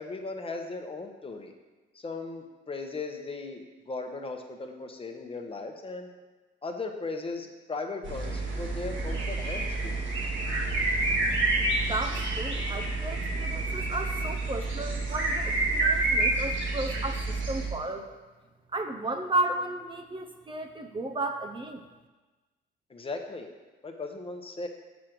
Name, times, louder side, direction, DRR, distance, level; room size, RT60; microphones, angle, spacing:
voice 1, 0.0-1.5 1.9-6.1 6.6-10.0 22.9-23.5 23.8-24.7, left 3 dB, 30° left, 4 dB, 0.9 m, -37 dB
sound 1, 8.0-17.7, right 2 dB, 70° right, 1.7 m, -28 dB
voice 2, 11.8-18.2 18.7-21.8, right 2 dB, 25° right, 4 dB, 0.6 m, -34 dB
6.4 x 5.2 x 6.0 m, 1.2 s
cardioid pair, 90°, 20 cm